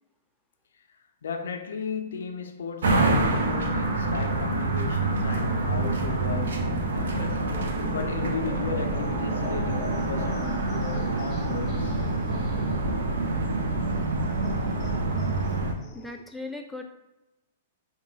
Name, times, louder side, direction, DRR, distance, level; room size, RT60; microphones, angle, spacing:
voice 1, 1.2-12.1, left 5 dB, 80° left, 0.3 m, -35 dB
sound 1, 2.8-15.7, right 2 dB, 80° right, 0.4 m, -26 dB
sound 2, 7.5-16.2, left 2 dB, 25° left, 0.8 m, -45 dB
voice 2, 15.9-16.8, left 2 dB, ahead, 0.4 m, -37 dB
2.9 x 2.2 x 2.7 m
hypercardioid pair, 125°, 0 cm